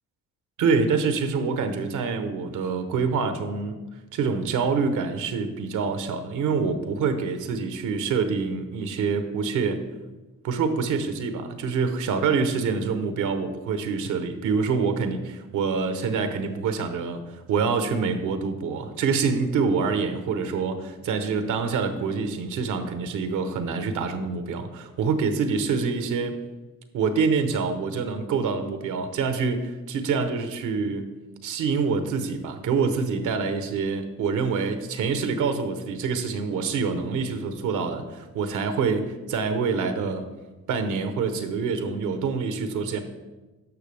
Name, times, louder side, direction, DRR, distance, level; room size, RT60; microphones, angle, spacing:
voice 1, 0.6-3.8 4.1-9.8 10.4-17.2 17.5-26.4 26.9-31.0 31.4-40.3 40.7-43.0, right 5 dB, 80° right, 8 dB, 1.0 m, -26 dB
12.0 x 6.0 x 3.4 m, 1.2 s
cardioid pair, 90°, 30 cm